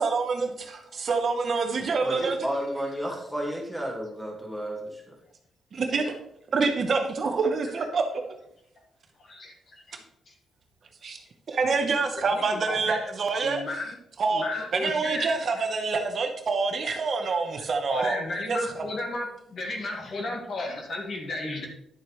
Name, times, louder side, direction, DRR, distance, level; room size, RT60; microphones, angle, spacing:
voice 1, 0.0-2.4 5.7-6.1 6.5-8.0 11.0-11.2 11.5-13.6 14.2-18.2 18.5-18.8, right 4 dB, 40° right, 4 dB, 1.0 m, -26 dB
voice 2, 2.0-5.1, equal, ahead, -1 dB, 2.0 m, -32 dB
voice 3, 9.2-10.3 12.2-13.1 13.4-13.9 14.3-15.3 15.6-15.7 17.9-21.7, left 2 dB, 45° left, 2 dB, 1.7 m, -34 dB
10.5 x 7.3 x 3.2 m, 0.75 s
cardioid pair, 155°, 0 cm